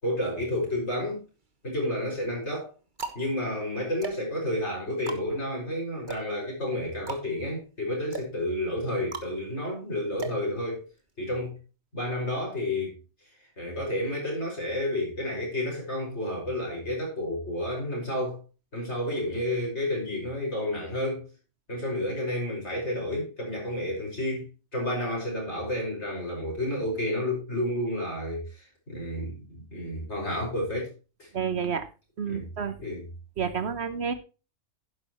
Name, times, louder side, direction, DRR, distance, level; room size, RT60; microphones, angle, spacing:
voice 1, 0.0-1.2 1.6-2.7 3.1-10.8 11.2-11.6 11.9-13.0 13.6-18.4 18.7-21.3 21.7-30.9 31.2-31.3 32.3-32.4 32.8-33.0, left 1 dB, 65° left, 6.5 m, -30 dB
sound 1, 1.0-1.8 2.4-11.2, right 4 dB, 40° right, 1.6 m, -41 dB
voice 2, 31.3-31.9 32.2-32.8 33.4-34.1, right 6 dB, 60° right, 1.3 m, -29 dB
11.5 x 10.5 x 3.1 m
omnidirectional pair, 1.3 m